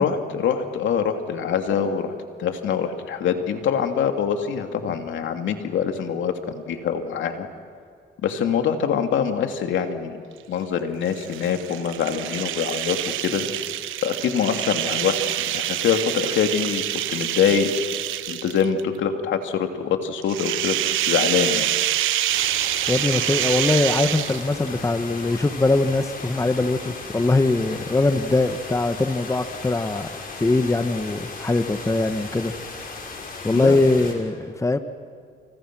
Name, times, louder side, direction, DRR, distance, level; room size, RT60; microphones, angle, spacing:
voice 1, 0.0-2.1 2.4-7.5 8.2-10.2 10.5-13.0 13.2-13.5 14.0-16.8 17.1-17.7 18.3-20.7 21.1-21.7 33.5-33.8, left 7 dB, 75° left, 5 dB, 2.7 m, -24 dB
sound 1, 11.1-18.8 20.2-24.7, right 13 dB, 90° right, 1.1 m, -26 dB
sound 2, 22.3-34.1, left 3 dB, 45° left, 6.4 m, -37 dB
voice 2, 22.9-30.1 30.4-32.5 33.4-34.8, left 2 dB, 15° left, 9 dB, 1.3 m, -22 dB
29.5 x 29.5 x 6.2 m, 2.1 s
cardioid pair, 90°, 20 cm